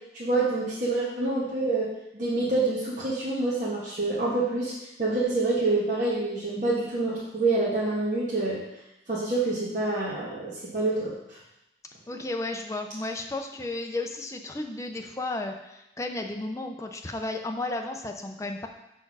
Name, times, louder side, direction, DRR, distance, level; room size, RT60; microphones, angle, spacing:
voice 1, 0.1-1.9 2.1-4.7 5.0-8.6 9.1-11.4, right 2 dB, 45° right, -7 dB, 1.3 m, -27 dB
voice 2, 12.1-18.7, left 2 dB, 15° left, 3 dB, 0.5 m, -33 dB
6.6 x 4.3 x 4.7 m, 0.90 s
head